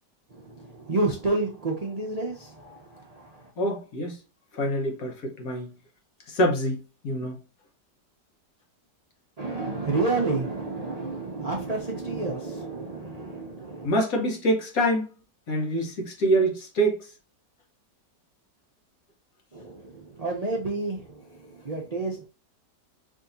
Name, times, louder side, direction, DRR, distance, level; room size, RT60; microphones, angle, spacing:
voice 1, 0.3-3.2 9.4-13.9 19.5-21.1 21.5-22.2, right 3 dB, 75° right, 0.3 m, -30 dB
voice 2, 3.6-4.2 4.5-5.7 6.3-7.4 13.8-15.1 15.5-17.1, right 1 dB, 55° left, 1.4 m, -25 dB
4.8 x 2.8 x 2.6 m
omnidirectional pair, 1.9 m